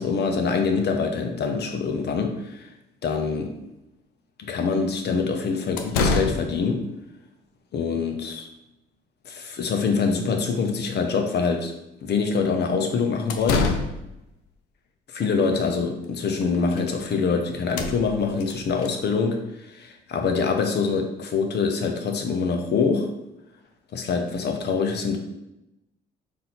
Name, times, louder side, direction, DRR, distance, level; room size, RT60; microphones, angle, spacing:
voice 1, 0.0-2.7 3.0-3.5 4.4-6.8 7.7-8.5 9.2-11.7 12.0-13.7 15.1-23.1 23.9-25.2, left 5 dB, 55° left, 4 dB, 0.9 m, -25 dB
sound 1, 3.2-3.3 5.1-5.2 5.8-6.6 13.1-14.2 16.0-16.1 16.4-17.0 17.3-17.4 17.6-18.9, left 4 dB, 90° left, 0.5 m, -27 dB
4.2 x 2.8 x 4.0 m, 0.90 s
supercardioid pair, 60°, 20 cm